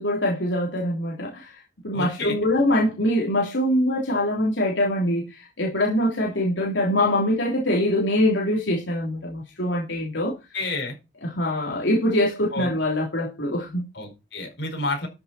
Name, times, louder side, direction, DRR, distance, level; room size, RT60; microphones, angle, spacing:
voice 1, 0.0-1.5 1.8-10.3 11.2-13.8, left 1 dB, 85° left, 3.4 m, -23 dB
voice 2, 1.9-2.4 10.2-10.9 12.5-12.7 13.9-15.1, left 2 dB, 70° left, 5.1 m, -30 dB
13.0 x 7.8 x 4.4 m
head